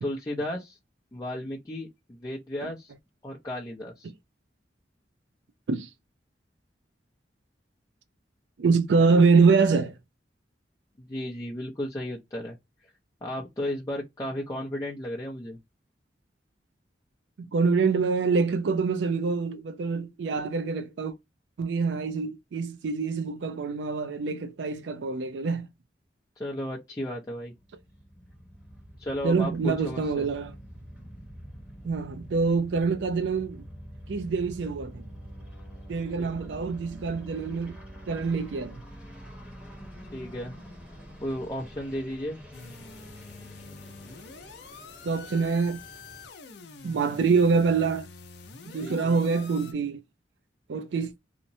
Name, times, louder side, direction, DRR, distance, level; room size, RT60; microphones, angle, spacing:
voice 1, 0.0-0.8 1.1-2.9 3.2-4.1 11.0-12.6 12.8-12.9 13.2-15.6 26.4-27.5 29.0-30.3 36.2-36.3 40.1-40.5 41.2-42.4 48.8-49.2, left 1 dB, 20° left, 0.5 m, -34 dB
voice 2, 8.6-9.9 17.5-21.1 21.6-25.7 29.2-30.5 31.8-33.6 34.1-35.0 35.9-37.8 38.1-38.8 45.0-45.8 46.8-48.1 48.7-50.0 50.7-51.1, right 4 dB, 80° right, 0.4 m, -25 dB
sound 1, 27.5-46.3, equal, 5° right, 0.9 m, -46 dB
sound 2, 42.5-49.7, left 4 dB, 70° left, 0.5 m, -46 dB
2.8 x 2.0 x 2.5 m
head